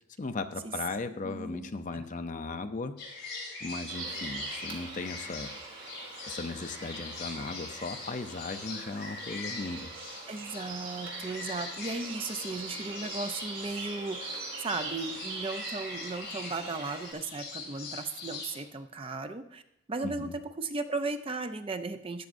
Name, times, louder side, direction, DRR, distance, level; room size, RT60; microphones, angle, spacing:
voice 1, 0.2-3.0 3.6-5.5 6.3-9.9 20.0-20.3, left 3 dB, 40° left, 8 dB, 0.5 m, -37 dB
voice 2, 1.2-1.7 1.9-2.0 10.3-19.6 19.9-22.3, right 3 dB, 25° right, 8 dB, 0.5 m, -36 dB
sound 1, 3.0-18.6, left 3 dB, 55° left, 4.4 m, -43 dB
sound 2, 3.9-17.1, right 3 dB, 85° right, 2.9 m, -42 dB
13.0 x 9.2 x 2.6 m, 0.81 s
head